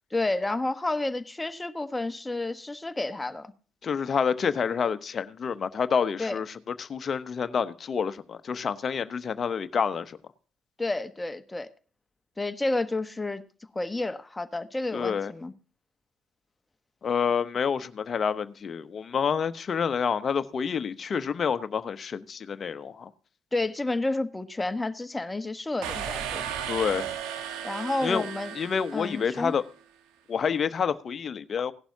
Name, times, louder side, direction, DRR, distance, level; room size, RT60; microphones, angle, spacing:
voice 1, 0.1-3.5 6.2-6.4 10.8-11.7 12.4-13.4 13.7-15.5 23.5-26.5 27.6-28.5 28.9-29.5, left 2 dB, 20° left, 1.1 m, -30 dB
voice 2, 3.8-10.2 14.9-15.3 17.0-23.1 26.7-27.1 28.0-28.3 28.5-29.6 30.3-31.7, left 6 dB, 50° left, 0.9 m, -28 dB
sound 1, 25.8-29.6, right 9 dB, 75° right, 1.2 m, -35 dB
17.0 x 11.5 x 2.8 m
hypercardioid pair, 50°, 0 cm